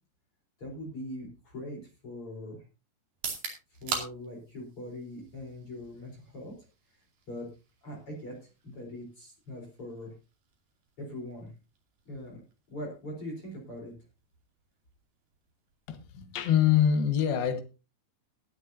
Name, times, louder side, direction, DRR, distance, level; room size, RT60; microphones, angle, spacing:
voice 1, 0.6-2.6 3.7-6.6 6.9-7.5 7.8-10.1 11.0-11.5 12.1-12.4 12.7-13.9, left 1 dB, 35° left, -1 dB, 4.7 m, -42 dB
sound 1, 3.1-16.9, right 6 dB, 75° right, 4.5 m, -45 dB
voice 2, 15.9-17.6, left 9 dB, 75° left, 7 dB, 3.2 m, -25 dB
20.0 x 9.5 x 2.7 m, 0.30 s
omnidirectional pair, 4.5 m